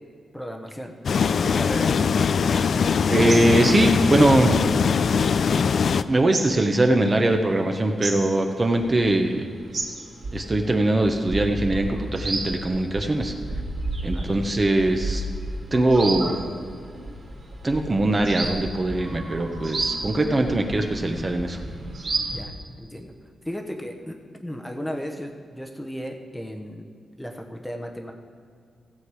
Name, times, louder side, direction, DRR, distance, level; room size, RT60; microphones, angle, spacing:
voice 1, 0.3-2.1 14.1-14.4 22.3-22.5 22.8-23.1 23.4-24.1 24.4-26.9 27.2-28.1, equal, 5° left, 3 dB, 1.0 m, -35 dB
sound 1, 1.0-6.0, left 6 dB, 60° left, 0.3 m, -21 dB
voice 2, 3.1-4.6 6.1-9.5 10.3-13.3 14.0-15.2 15.7-16.4 17.6-21.6, right 2 dB, 25° right, 4 dB, 1.0 m, -21 dB
sound 2, 3.3-5.6 5.9-9.3 9.6-22.4, right 2 dB, 60° right, 2.7 m, -32 dB
15.5 x 7.9 x 4.9 m, 2.3 s
wide cardioid pair, 115°, 0 cm